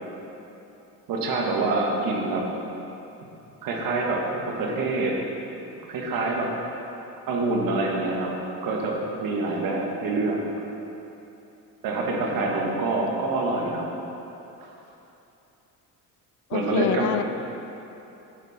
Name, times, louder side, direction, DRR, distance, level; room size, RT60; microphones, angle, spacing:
voice 1, 1.1-2.5 3.6-5.2 5.9-6.5 7.3-8.3 8.6-10.4 11.8-13.9 16.5-17.2, right 3 dB, 70° right, 0 dB, 1.6 m, -26 dB
voice 2, 12.4-13.1 16.5-17.2, left 11 dB, 55° left, 11 dB, 0.5 m, -29 dB
10.5 x 8.6 x 4.2 m, 3.0 s
cardioid pair, 140°, 35 cm